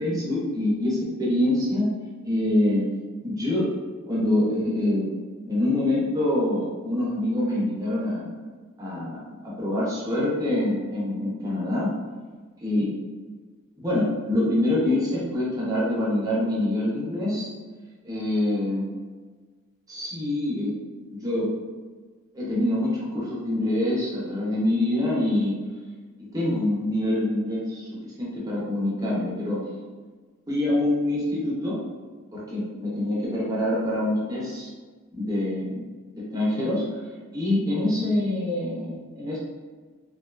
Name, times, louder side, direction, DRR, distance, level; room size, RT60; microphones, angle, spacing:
voice 1, 0.0-1.9 2.2-2.9 3.2-3.7 4.1-5.1 5.5-8.3 8.8-11.9 12.6-12.9 13.8-17.5 18.0-18.9 19.9-20.7 21.1-21.5 22.3-25.6 26.2-29.6 30.5-31.8 32.3-34.7 35.1-35.8 36.2-37.0 37.3-39.4, left 1 dB, 15° right, -6 dB, 0.6 m, -25 dB
2.5 x 2.2 x 2.3 m, 1.4 s
head